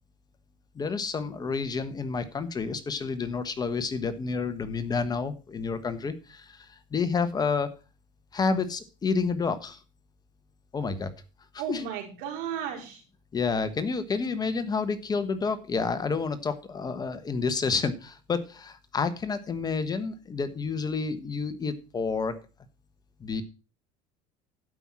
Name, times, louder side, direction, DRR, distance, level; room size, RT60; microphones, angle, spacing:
voice 1, 0.7-7.7 8.3-9.8 10.7-11.1 11.7-11.8 13.3-22.3 23.2-23.4, left 4 dB, 25° left, 11 dB, 1.3 m, -29 dB
voice 2, 11.6-13.0, right 9 dB, 70° right, 2 dB, 4.3 m, -34 dB
12.0 x 5.6 x 6.1 m, 0.33 s
supercardioid pair, 110°, 16 cm